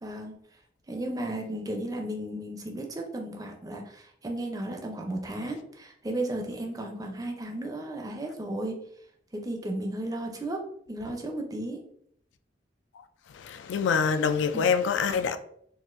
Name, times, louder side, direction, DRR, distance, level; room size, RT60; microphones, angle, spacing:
voice 1, 0.0-0.4 0.9-8.8 9.3-11.8 14.5-14.6, right 1 dB, 20° right, 0.5 m, -34 dB
voice 2, 13.3-15.4, left 6 dB, 75° left, 0.3 m, -25 dB
4.1 x 2.5 x 2.5 m
head